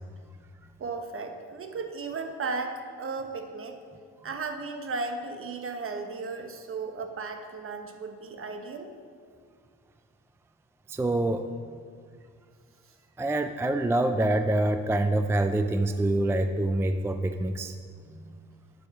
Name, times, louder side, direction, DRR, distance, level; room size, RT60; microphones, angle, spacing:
voice 1, 0.8-3.8 4.2-8.9, right 4 dB, 45° right, 5 dB, 1.1 m, -35 dB
voice 2, 10.9-11.5 13.2-17.7 18.1-18.4, right 1 dB, 10° right, 8 dB, 0.3 m, -26 dB
11.0 x 4.9 x 5.9 m, 2.1 s
cardioid pair, 90°, 30 cm